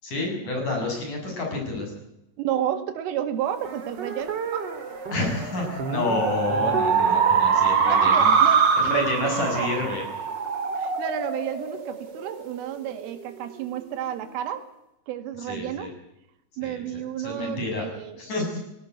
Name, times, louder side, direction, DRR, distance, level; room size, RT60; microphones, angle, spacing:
voice 1, 0.0-1.9 5.1-8.3 8.8-10.0 15.5-15.9 16.6-16.8 17.2-17.9 18.2-18.6, left 2 dB, 40° left, 1 dB, 8.0 m, -29 dB
voice 2, 2.4-4.7 7.9-9.7 10.7-14.7 15.1-15.9 16.6-18.2, right 10 dB, 85° right, 9 dB, 4.4 m, -31 dB
sound 1, 3.6-12.5, right 6 dB, 40° right, 1.7 m, -24 dB
18.5 x 17.0 x 9.5 m, 0.87 s
omnidirectional pair, 5.6 m